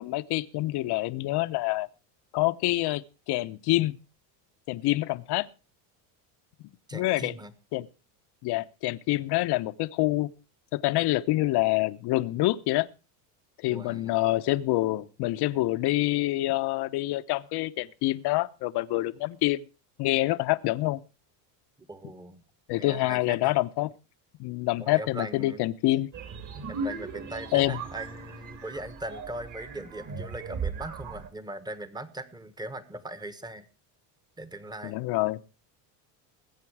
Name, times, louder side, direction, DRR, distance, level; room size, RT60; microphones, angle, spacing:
voice 1, 0.0-1.9 2.3-4.0 4.7-5.5 6.9-7.3 7.7-7.9 8.4-10.3 10.7-12.9 13.6-19.7 20.0-21.0 22.7-23.9 24.4-26.1 27.5-27.8 34.8-35.4, left 18 dB, 55° left, 0.9 m, -26 dB
voice 2, 6.9-7.5 13.7-14.1 21.9-22.4 22.7-23.6 24.8-25.6 26.7-33.6 34.4-35.0, right 1 dB, 10° right, 1.3 m, -40 dB
sound 1, 26.1-31.3, right 5 dB, 40° right, 2.7 m, -37 dB
20.0 x 8.3 x 4.8 m
cardioid pair, 130°, 47 cm